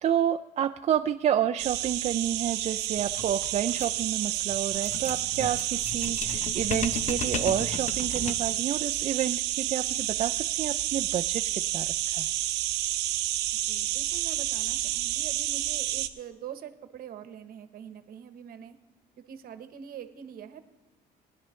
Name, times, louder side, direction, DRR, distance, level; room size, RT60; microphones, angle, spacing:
voice 1, 0.0-12.3, right 10 dB, 40° right, 6 dB, 0.4 m, -29 dB
sound 1, 1.6-16.1, right 14 dB, 90° right, 0.7 m, -30 dB
sound 2, 2.9-8.6, left 6 dB, 45° left, 0.7 m, -37 dB
voice 2, 13.7-18.7 19.3-20.6, right 9 dB, 60° right, 10 dB, 1.0 m, -44 dB
20.5 x 10.0 x 3.2 m, 1.1 s
cardioid pair, 110°, 17 cm